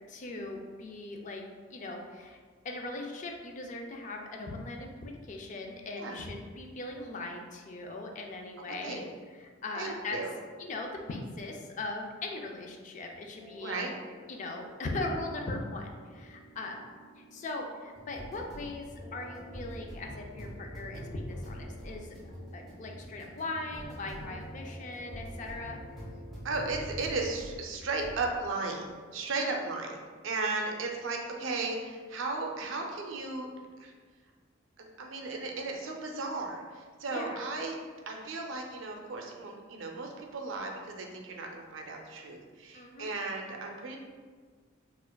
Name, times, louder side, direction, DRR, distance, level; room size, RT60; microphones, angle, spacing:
voice 1, 0.1-1.4 1.7-2.4 2.6-10.2 10.6-13.9 14.3-16.9 17.2-22.2 22.5-25.8 29.2-29.6 37.1-37.4 42.7-43.1, left 2 dB, 40° left, 2 dB, 0.3 m, -39 dB
voice 2, 8.6-9.0 9.7-10.3 13.6-13.9 26.4-28.9 29.1-33.5 33.8-33.9 34.8-37.8 38.1-44.0, right 3 dB, 80° right, 1 dB, 0.5 m, -35 dB
sound 1, 13.4-27.6 28.0-28.3, equal, ahead, 0.8 m, -45 dB
4.2 x 2.4 x 2.2 m, 1.6 s
head